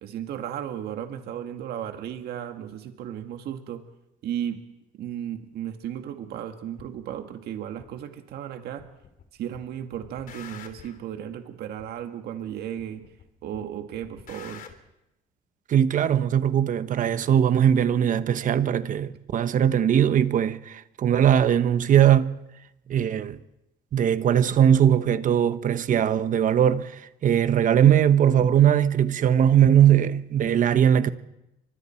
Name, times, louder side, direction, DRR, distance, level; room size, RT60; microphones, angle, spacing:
voice 1, 0.0-3.8 4.2-4.6 4.9-8.8 9.3-13.0 13.4-14.6, right 10 dB, 70° right, 1.9 m, -35 dB
sound 1, 6.8-6.9 7.8-7.9 8.8-9.3 9.5-11.0 11.8-11.9 12.8-13.3 13.5-14.8, left 7 dB, 55° left, 3.4 m, -46 dB
voice 2, 15.7-22.3 22.9-23.4 23.9-31.1, right 9 dB, 50° right, 1.2 m, -20 dB
29.5 x 25.0 x 4.5 m
cardioid pair, 110°, 17 cm